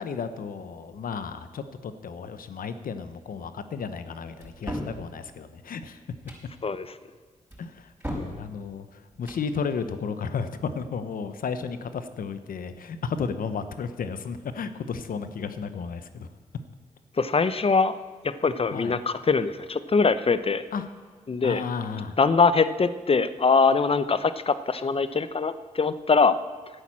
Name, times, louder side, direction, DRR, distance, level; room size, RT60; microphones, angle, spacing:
voice 1, 0.0-6.0 7.6-8.9 9.2-16.3 18.7-18.9 20.7-20.9 21.4-22.2, left 5 dB, 75° left, 11 dB, 0.9 m, -33 dB
sound 1, 4.4-5.0 6.1-6.5 7.5-8.4 9.1-9.5, equal, 15° right, 5.2 m, -35 dB
voice 2, 6.6-6.9 17.2-18.0 18.2-20.6 21.3-21.6 22.2-26.3, left 4 dB, 40° left, 13 dB, 0.8 m, -22 dB
11.5 x 9.0 x 7.4 m, 1.4 s
cardioid pair, 50°, 15 cm